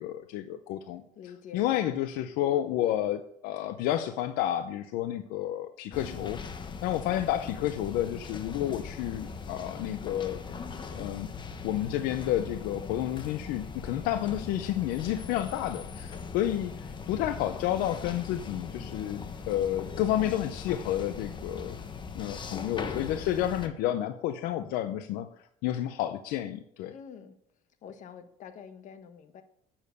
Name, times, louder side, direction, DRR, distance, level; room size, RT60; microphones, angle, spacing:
voice 1, 0.0-1.0 1.5-6.4 6.8-10.4 10.9-11.3 11.6-21.8 22.1-25.3 25.6-26.9, left 12 dB, 85° left, 10 dB, 0.6 m, -30 dB
voice 2, 1.2-1.6 26.9-27.3 27.8-29.4, left 7 dB, 60° left, 9 dB, 1.2 m, -46 dB
sound 1, 5.9-23.7, left 5 dB, 30° left, 1.1 m, -40 dB
8.8 x 7.0 x 6.6 m, 0.70 s
cardioid pair, 110°, 15 cm